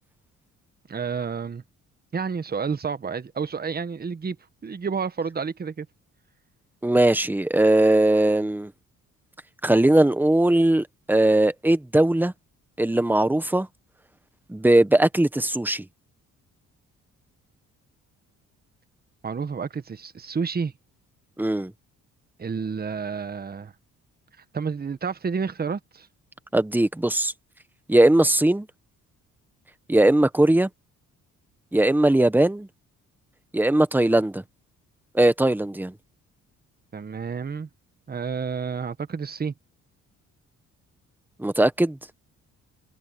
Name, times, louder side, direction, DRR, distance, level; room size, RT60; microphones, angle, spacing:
voice 1, 0.9-1.6 2.1-4.4 4.6-5.9 19.2-20.7 22.4-23.7 24.5-26.1 36.9-37.7 38.1-39.5, right 5 dB, 30° right, 1.4 m, -30 dB
voice 2, 6.8-8.7 9.6-12.3 12.8-13.7 14.5-15.8 21.4-21.7 26.5-27.3 27.9-28.7 29.9-30.7 31.7-32.7 33.5-34.4 35.1-35.9 41.4-42.0, right 1 dB, 5° right, 1.3 m, -19 dB
cardioid pair, 90°, 30 cm